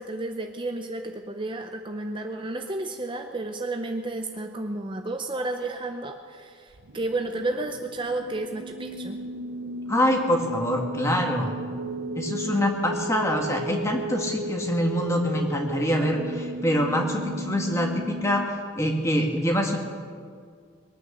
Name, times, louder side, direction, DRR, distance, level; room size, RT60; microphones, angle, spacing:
voice 1, 0.0-9.2, right 2 dB, 25° right, 5 dB, 0.7 m, -32 dB
sound 1, 6.7-18.5, right 1 dB, 75° right, 0.7 m, -35 dB
voice 2, 9.9-11.5 12.2-19.8, equal, 15° left, 2 dB, 1.7 m, -25 dB
22.0 x 9.4 x 6.7 m, 2.1 s
head